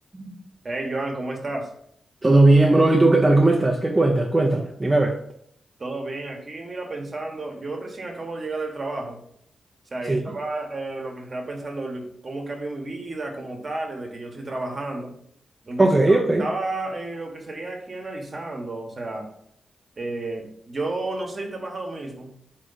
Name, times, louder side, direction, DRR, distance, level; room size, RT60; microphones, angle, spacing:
voice 1, 0.6-1.7 5.8-9.2 9.9-15.1 15.7-19.3 20.0-22.4, right 2 dB, 45° right, 1.1 m, -32 dB
voice 2, 2.2-5.2 10.1-10.2 15.8-16.5, right 2 dB, 25° right, 0.6 m, -18 dB
3.8 x 3.1 x 3.9 m
cardioid pair, 55°, 0 cm